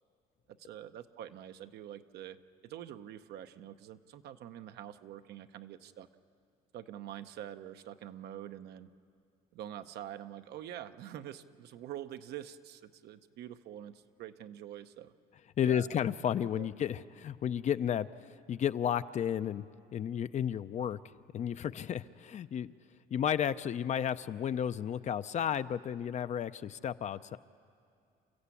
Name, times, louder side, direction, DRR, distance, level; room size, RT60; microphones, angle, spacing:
voice 1, 0.6-2.4 2.6-6.1 6.7-8.9 9.5-15.1 15.6-15.9 16.5-16.7, right 11 dB, 75° right, 9 dB, 0.8 m, -45 dB
voice 2, 15.6-19.6 19.9-21.0 21.3-22.7 23.1-27.4, left 9 dB, 45° left, 13 dB, 0.5 m, -32 dB
29.0 x 14.5 x 8.4 m, 2.3 s
cardioid pair, 110°, 17 cm